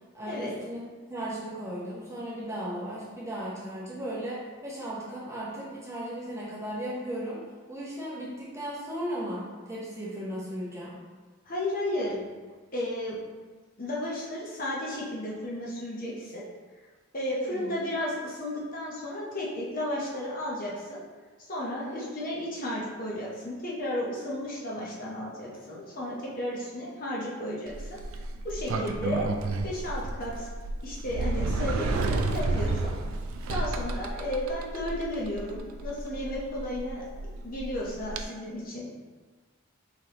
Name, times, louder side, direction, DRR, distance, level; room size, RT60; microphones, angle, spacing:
voice 1, 0.1-0.8 1.1-7.4 7.7-11.0 17.3-17.7 21.8-22.1 28.7-29.0, right 1 dB, 15° right, -7 dB, 0.8 m, -36 dB
voice 2, 11.4-12.2 12.7-13.2 13.8-16.5 17.1-21.0 21.5-28.0 28.4-29.2 29.6-30.5 30.8-32.9 33.5-38.9, left 1 dB, 40° left, -5 dB, 0.7 m, -33 dB
Sliding door, 27.7-38.2, right 2 dB, 65° right, 0.3 m, -32 dB
4.0 x 3.4 x 2.9 m, 1.4 s
head